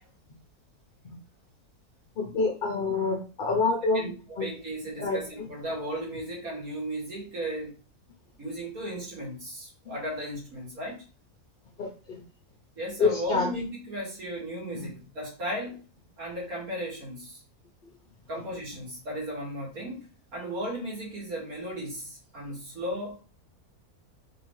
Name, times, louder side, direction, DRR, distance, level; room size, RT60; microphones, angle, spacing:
voice 1, 2.2-4.1 4.4-4.5 5.0-5.5 11.8-12.2 13.0-13.5 14.7-14.9 18.3-18.4, left 4 dB, 50° left, 0 dB, 0.7 m, -27 dB
voice 2, 3.9-7.8 8.4-11.0 12.8-15.8 16.2-17.4 18.3-20.1 20.3-23.2, equal, 70° right, -4 dB, 2.3 m, -35 dB
3.7 x 3.4 x 3.1 m, 0.35 s
omnidirectional pair, 1.6 m